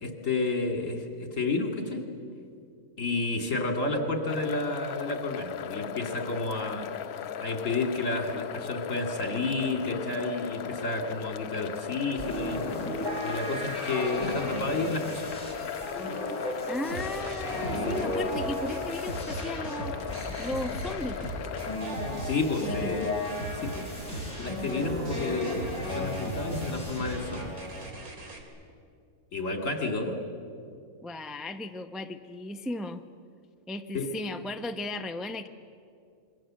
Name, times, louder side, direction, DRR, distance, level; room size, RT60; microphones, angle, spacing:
voice 1, 0.0-2.0 3.0-6.9 7.4-12.6 13.2-15.4 22.2-23.1 23.5-27.5 29.3-30.2 33.9-34.1, left 3 dB, 60° left, 4 dB, 2.9 m, -31 dB
sound 1, 4.3-21.8, left 8 dB, 90° left, 1.3 m, -37 dB
sound 2, 12.2-27.9, left 1 dB, 30° left, 6.6 m, -35 dB
voice 2, 16.7-20.0 20.4-21.2 22.6-23.1 31.0-33.0 33.7-35.5, left 2 dB, ahead, 6 dB, 0.5 m, -36 dB
sound 3, 16.9-28.4, right 2 dB, 75° right, 3.4 m, -39 dB
26.5 x 22.5 x 7.6 m, 2.4 s
omnidirectional pair, 1.5 m